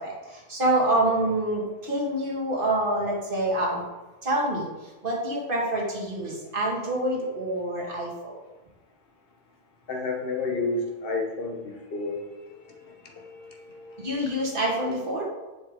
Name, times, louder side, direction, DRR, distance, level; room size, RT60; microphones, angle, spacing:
voice 1, 0.0-3.8 4.2-8.4 14.0-15.3, right 1 dB, 45° right, -3 dB, 2.0 m, -27 dB
voice 2, 9.9-12.2 12.9-13.0 13.3-13.4 13.7-14.0, left 3 dB, 50° left, 1 dB, 1.3 m, -30 dB
7.2 x 6.0 x 3.7 m, 1.1 s
omnidirectional pair, 1.3 m